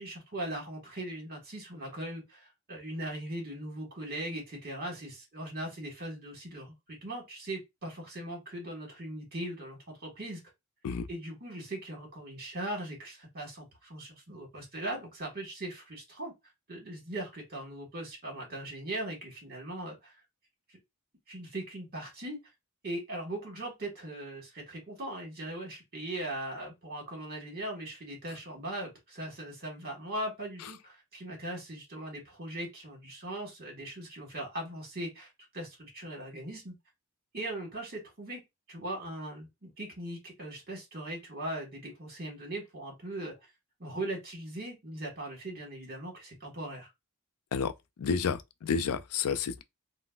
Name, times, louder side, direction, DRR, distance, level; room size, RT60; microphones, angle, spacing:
voice 1, 0.0-10.4 11.1-16.3 16.7-20.1 20.7-20.8 21.3-22.4 22.8-36.7 37.3-38.4 38.7-43.4 43.8-46.9, right 1 dB, 45° right, 1.5 m, -39 dB
voice 2, 48.0-49.6, left 6 dB, 85° left, 0.4 m, -30 dB
3.7 x 2.1 x 2.3 m
head